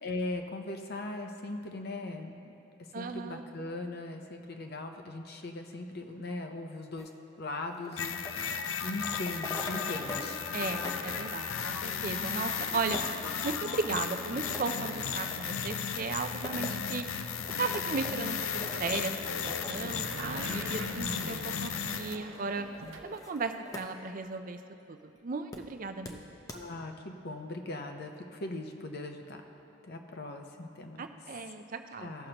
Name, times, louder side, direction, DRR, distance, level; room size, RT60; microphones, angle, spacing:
voice 1, 0.0-2.4 2.9-7.1 7.4-8.2 8.8-10.4 19.8-20.8 21.2-21.6 26.5-29.4 29.8-31.1 32.0-32.3, left 2 dB, 50° left, 4 dB, 0.7 m, -39 dB
voice 2, 2.9-3.4 10.5-13.0 13.4-17.1 17.6-19.2 19.4-22.7 23.0-24.6 24.9-26.4 31.0-32.1, right 4 dB, 40° right, 8 dB, 0.5 m, -36 dB
sound 1, 7.0-10.3 10.6-23.9 24.2-24.3 25.5-25.6 26.1-26.2 26.5-26.6, left 1 dB, 15° left, 0.7 m, -45 dB
sound 2, 8.0-22.2, left 7 dB, 90° left, 0.5 m, -35 dB
sound 3, 15.8-23.1, right 2 dB, 70° right, 0.8 m, -45 dB
16.0 x 6.5 x 2.9 m, 2.9 s
head